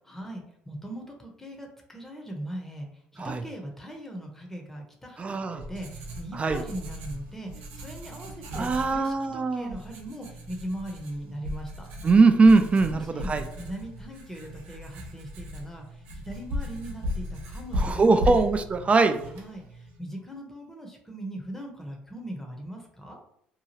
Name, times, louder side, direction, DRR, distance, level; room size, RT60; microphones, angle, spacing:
voice 1, 0.0-2.9 3.1-11.9 12.9-18.4 19.3-23.2, right 1 dB, 10° left, 1 dB, 0.8 m, -40 dB
voice 2, 5.2-5.6 6.4-6.6 8.5-9.8 12.0-13.4 17.8-19.2, right 4 dB, 30° right, 9 dB, 0.4 m, -21 dB
Writing, 5.2-20.0, left 1 dB, 80° right, 0.6 m, -37 dB
2.8 x 2.3 x 2.9 m, 0.72 s
supercardioid pair, 75°, 4 cm